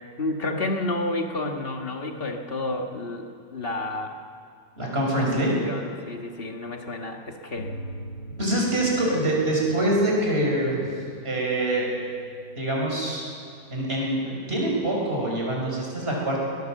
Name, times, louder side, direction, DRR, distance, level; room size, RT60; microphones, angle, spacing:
voice 1, 0.2-4.2 5.6-7.7, left 2 dB, 35° left, 3 dB, 1.8 m, -30 dB
voice 2, 4.8-5.5 8.4-10.9 11.2-11.9 12.6-13.2 13.7-16.4, right 1 dB, 30° right, -2 dB, 5.8 m, -25 dB
sound 1, 7.6-14.5, right 1 dB, 65° left, 2.3 m, -43 dB
21.5 x 18.5 x 7.5 m, 2.3 s
omnidirectional pair, 1.9 m